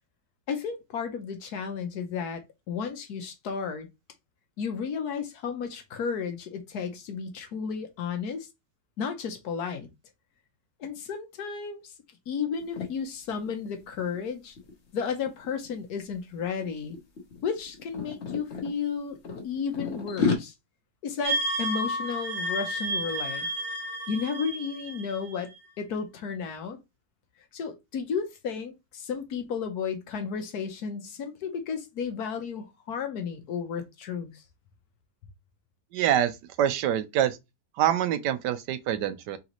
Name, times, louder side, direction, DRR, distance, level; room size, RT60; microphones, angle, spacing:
voice 1, 0.5-3.9 4.6-8.5 9.0-9.9 10.8-11.8 12.3-14.6 14.9-17.0 17.4-19.2 19.4-20.5 21.0-23.5 24.1-25.5 25.8-26.8 27.5-34.4, left 6 dB, 70° left, 1.4 m, -33 dB
sound 1, 12.6-12.9 13.3-13.5 13.8-15.7 16.4-16.7 16.9-18.7 19.2-20.4, left 5 dB, 45° left, 1.3 m, -31 dB
sound 2, 21.2-25.7, right 1 dB, 40° right, 1.1 m, -31 dB
voice 2, 35.9-37.4 37.8-39.4, right 10 dB, 85° right, 1.3 m, -26 dB
4.0 x 3.9 x 3.0 m
omnidirectional pair, 1.8 m